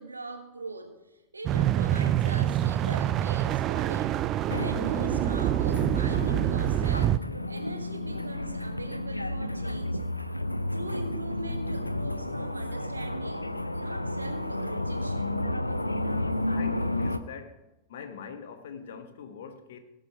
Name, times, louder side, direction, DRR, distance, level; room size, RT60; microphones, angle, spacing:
voice 1, 0.0-4.2 4.5-7.2 7.5-10.0 10.7-15.4, right 2 dB, 80° right, 1.3 m, -41 dB
sound 1, 1.5-7.2, right 12 dB, 35° right, 0.4 m, -26 dB
sound 2, 4.5-17.2, left 1 dB, 85° left, 0.5 m, -32 dB
voice 2, 16.5-17.6 17.9-19.8, left 6 dB, 60° left, 1.2 m, -43 dB
19.0 x 6.3 x 4.6 m
figure-of-eight pair, 90°, 0 cm